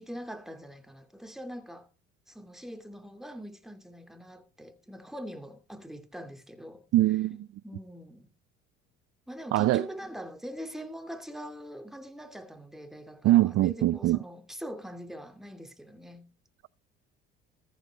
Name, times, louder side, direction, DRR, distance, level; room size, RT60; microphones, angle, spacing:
voice 1, 0.0-1.9 2.3-6.8 7.6-8.3 9.3-16.3, equal, ahead, 2.6 m, -43 dB
voice 2, 6.9-7.5 9.5-9.9 13.2-14.2, right 15 dB, 55° right, 0.5 m, -23 dB
14.0 x 7.8 x 4.7 m
supercardioid pair, 75°, 29 cm